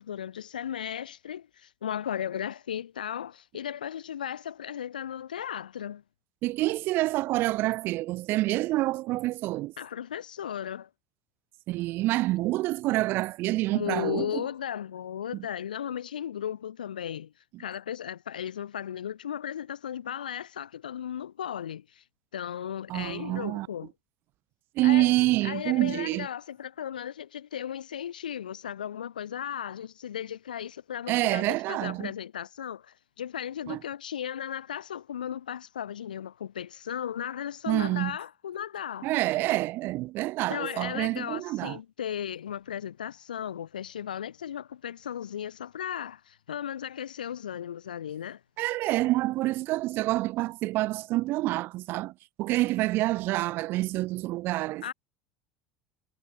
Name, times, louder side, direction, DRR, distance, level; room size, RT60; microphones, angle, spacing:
voice 1, 0.0-6.0 9.8-10.9 13.7-17.3 17.6-22.0 22.3-23.9 24.8-25.2 25.4-39.1 40.5-48.4 54.8-54.9, left 9 dB, 85° left, 0.3 m, -36 dB
voice 2, 6.4-9.7 11.7-14.4 15.3-15.5 22.9-23.7 24.8-26.3 31.1-32.1 33.7-33.8 37.7-38.1 39.0-41.8 48.6-52.1 52.4-54.8, right 18 dB, 55° right, 0.6 m, -27 dB
hypercardioid pair, 75°, 4 cm